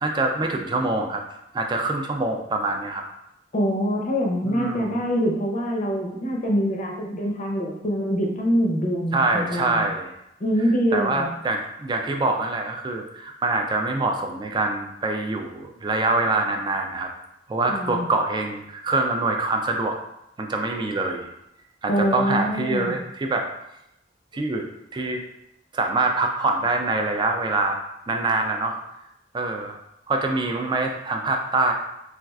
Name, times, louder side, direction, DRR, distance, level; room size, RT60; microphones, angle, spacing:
voice 1, 0.0-1.2 1.5-3.0 4.4-5.0 9.1-10.1 10.9-17.1 17.5-20.0 20.4-21.3 21.8-23.5 24.3-24.6 24.9-25.2 25.7-27.8 28.1-28.8 29.3-29.8 30.1-31.7, right 2 dB, 25° right, 3 dB, 0.3 m, -25 dB
voice 2, 3.5-9.8 10.4-11.3 17.7-18.1 21.9-22.9, equal, 40° left, 0 dB, 0.6 m, -24 dB
4.2 x 2.4 x 2.3 m, 0.83 s
head